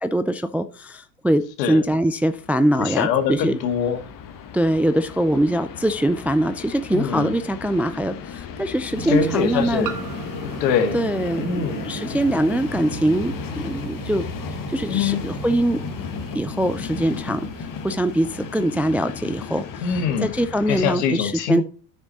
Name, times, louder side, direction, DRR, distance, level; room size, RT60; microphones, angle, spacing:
voice 1, 0.0-3.6 4.5-9.9 10.9-14.2 14.7-15.9 16.3-17.5 17.8-19.8 20.2-21.6, right 1 dB, 5° right, 11 dB, 0.3 m, -22 dB
Train, 2.0-21.0, left 7 dB, 40° left, 1.5 m, -36 dB
voice 2, 2.8-4.0 6.9-7.4 9.1-10.0 10.4-11.0 11.4-11.8 14.9-15.2 19.8-20.3 20.7-21.6, left 7 dB, 75° left, 7 dB, 2.0 m, -23 dB
sound 1, 5.9-6.0 7.6-7.7 9.8-12.3, right 8 dB, 40° right, 1.2 m, -40 dB
sound 2, 8.9-19.7, right 5 dB, 90° right, 1.8 m, -37 dB
9.8 x 6.4 x 4.0 m, 0.37 s
hypercardioid pair, 75°, 49 cm